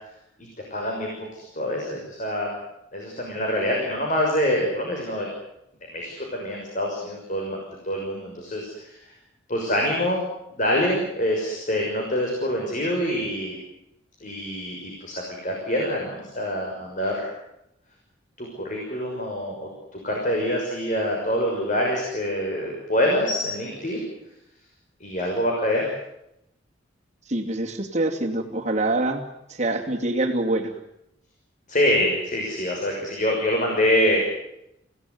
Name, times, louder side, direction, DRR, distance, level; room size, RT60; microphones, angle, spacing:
voice 1, 0.4-2.5 2.9-5.3 5.9-7.6 7.8-9.1 9.5-10.2 10.6-13.6 14.2-17.3 18.4-19.7 20.0-24.0 25.0-25.9 31.7-34.2, left 1 dB, 40° left, 0 dB, 6.2 m, -25 dB
voice 2, 27.3-29.2 29.5-30.7, right 2 dB, 35° right, 3 dB, 2.6 m, -25 dB
29.0 x 17.5 x 9.6 m, 0.83 s
head